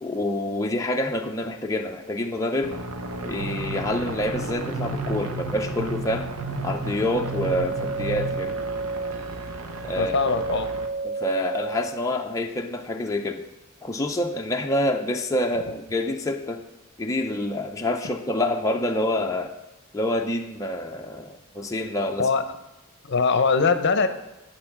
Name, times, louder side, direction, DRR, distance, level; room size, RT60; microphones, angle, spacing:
voice 1, 0.0-2.7 3.2-6.3 6.6-8.7 9.8-10.1 11.0-13.4 13.8-16.6 17.0-19.5 19.9-22.3, left 1 dB, 15° left, 2 dB, 0.5 m, -27 dB
sound 1, 2.6-10.9, right 2 dB, 90° right, 0.9 m, -36 dB
sound 2, 3.4-8.4, right 2 dB, 70° right, 1.2 m, -33 dB
sound 3, 7.1-12.1, right 3 dB, 40° right, 0.8 m, -32 dB
voice 2, 10.0-10.7 22.2-22.4 23.1-24.1, left 4 dB, 55° left, 10 dB, 0.7 m, -21 dB
8.6 x 6.7 x 5.8 m, 1.0 s
head